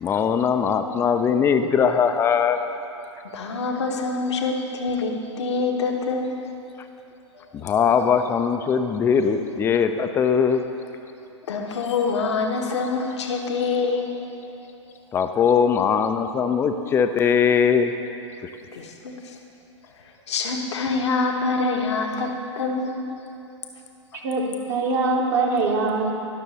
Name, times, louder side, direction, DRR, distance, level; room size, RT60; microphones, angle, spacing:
voice 1, 0.0-2.6 7.5-10.6 15.1-17.9, left 7 dB, 15° left, 8 dB, 0.4 m, -20 dB
voice 2, 3.3-6.4 7.3-7.7 11.5-14.2 18.7-19.4 19.9-23.1, left 4 dB, 60° left, 2 dB, 1.1 m, -26 dB
voice 3, 24.2-26.1, right 3 dB, 40° right, -1 dB, 1.0 m, -23 dB
11.5 x 6.2 x 4.1 m, 2.8 s
figure-of-eight pair, 110°, 16 cm